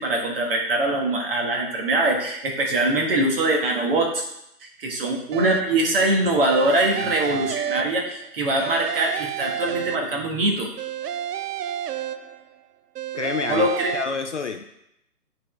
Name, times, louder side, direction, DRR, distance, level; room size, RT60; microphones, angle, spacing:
voice 1, 0.0-4.2 4.6-10.7 13.5-13.9, right 2 dB, 35° right, 0 dB, 1.4 m, -23 dB
sound 1, 5.3-5.9 6.4-8.3 8.6-10.4 10.8-12.6 12.9-14.0, right 10 dB, 80° right, 0.5 m, -31 dB
voice 2, 13.1-14.6, left 5 dB, 50° left, 6 dB, 0.5 m, -29 dB
9.6 x 3.9 x 3.3 m, 0.79 s
hypercardioid pair, 160°, 47 cm